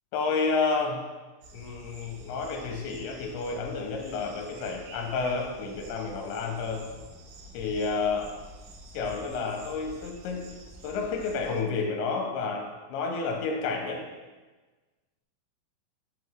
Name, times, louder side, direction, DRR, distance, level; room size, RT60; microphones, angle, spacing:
voice 1, 0.1-1.0 1.5-6.9 7.5-8.3 8.9-10.5 10.8-14.0, left 4 dB, 85° left, 3 dB, 2.9 m, -30 dB
sound 1, 1.4-11.6, right 1 dB, 80° right, 1.9 m, -48 dB
8.2 x 5.1 x 3.2 m, 1.3 s
omnidirectional pair, 5.1 m